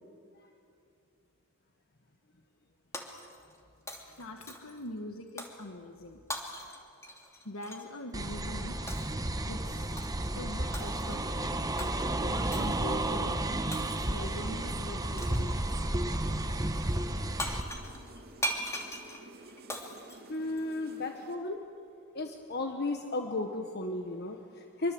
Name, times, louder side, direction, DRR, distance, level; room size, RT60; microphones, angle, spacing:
Shatter, 2.9-3.6 3.9-4.8 5.4-5.6 6.3-7.9 8.9-9.2 10.0-10.3 10.7-11.2 11.8-12.0 12.5-12.8 13.7-14.3 15.2-15.5 17.1-17.2 17.4-21.0, equal, 15° left, 2.7 m, -40 dB
voice 1, 4.1-6.2 7.4-8.8 9.5-11.6 12.2-13.7 14.0-15.8, left 1 dB, 75° left, 4 dB, 1.5 m, -43 dB
sound 1, 8.1-17.6, right 1 dB, 15° right, 1.1 m, -32 dB
sound 2, 13.9-21.4, right 2 dB, 50° right, 2.6 m, -51 dB
voice 2, 20.3-21.7 22.1-24.9, left 2 dB, 50° left, 4 dB, 1.4 m, -34 dB
25.0 x 24.5 x 7.9 m, 2.5 s
head